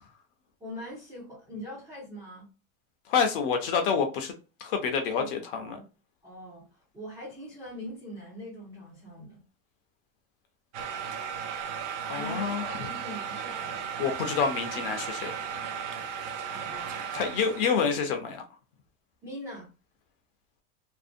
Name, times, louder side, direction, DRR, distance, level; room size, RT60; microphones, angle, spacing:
voice 1, 0.6-2.5 5.2-5.3 5.5-5.8 6.2-9.4 12.1-13.8 16.5-17.6 19.2-19.7, left 1 dB, 10° right, 0.4 m, -42 dB
voice 2, 3.1-4.3 4.6-5.8 12.1-12.7 14.0-15.3 17.1-18.4, left 6 dB, 45° left, 0.5 m, -27 dB
sound 1, 10.7-17.7, right 7 dB, 65° right, 0.6 m, -35 dB
2.6 x 2.0 x 2.4 m
supercardioid pair, 165°, 40 cm